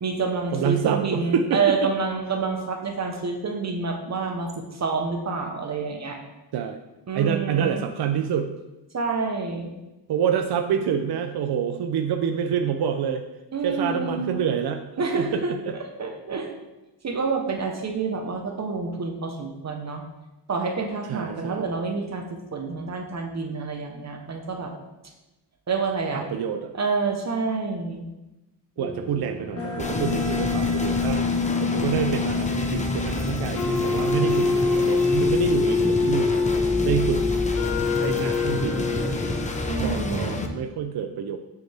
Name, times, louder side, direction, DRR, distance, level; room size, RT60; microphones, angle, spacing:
voice 1, 0.0-6.2 7.1-7.8 8.9-9.7 13.5-14.4 15.0-15.5 16.0-16.5 17.0-20.0 20.5-22.2 22.5-24.7 25.7-26.3 26.7-28.0 39.7-40.5, right 4 dB, 40° right, 2 dB, 1.1 m, -28 dB
voice 2, 0.5-1.9 6.5-6.8 7.1-8.5 10.1-13.2 13.6-15.7 21.1-21.7 26.1-26.7 28.8-36.3 36.8-37.2 37.9-39.4 39.8-41.4, right 8 dB, 65° right, 6 dB, 0.6 m, -27 dB
sound 1, 28.8-39.7, left 4 dB, 35° left, 1.4 m, -25 dB
sound 2, 29.8-40.5, left 2 dB, 15° left, 0.7 m, -29 dB
9.4 x 7.0 x 3.5 m, 1.0 s
wide cardioid pair, 145°, 42 cm